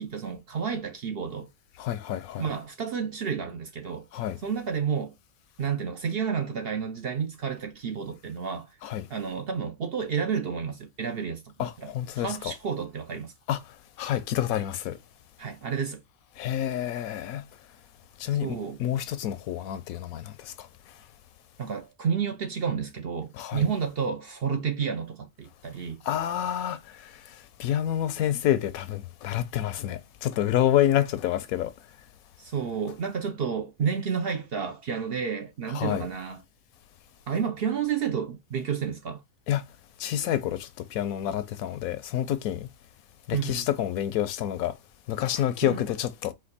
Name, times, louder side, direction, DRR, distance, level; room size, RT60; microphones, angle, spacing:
voice 1, 0.0-1.5 2.4-4.1 4.4-5.2 5.6-8.7 9.1-13.3 15.4-16.0 18.4-18.8 21.6-26.0 32.4-36.4 37.3-39.2 43.3-43.6 45.6-45.8, right 6 dB, 55° right, 0.7 m, -30 dB
voice 2, 1.8-2.5 4.1-4.4 8.8-9.1 11.6-12.5 13.5-13.6 14.0-15.0 16.4-17.5 18.2-20.7 23.3-23.7 26.0-31.7 35.7-36.1 39.5-39.6 40.0-42.7 43.3-44.8 45.1-46.3, left 11 dB, 85° left, 1.1 m, -28 dB
4.3 x 2.6 x 4.0 m
omnidirectional pair, 1.5 m